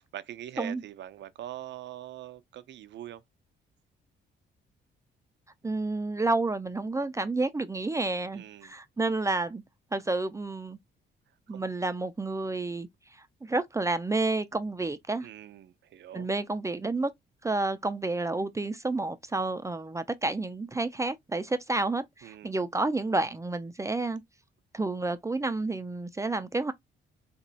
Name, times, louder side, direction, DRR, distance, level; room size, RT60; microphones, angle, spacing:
voice 1, 0.0-3.2 8.3-8.7 11.5-11.7 15.2-16.3 22.2-22.6, right 12 dB, 65° right, 0.5 m, -43 dB
voice 2, 5.6-9.6 9.9-10.8 11.5-12.9 13.4-15.3 16.1-17.1 17.4-24.2 24.7-26.7, right 2 dB, 15° right, 0.4 m, -30 dB
3.5 x 3.0 x 2.7 m
cardioid pair, 90°, 20 cm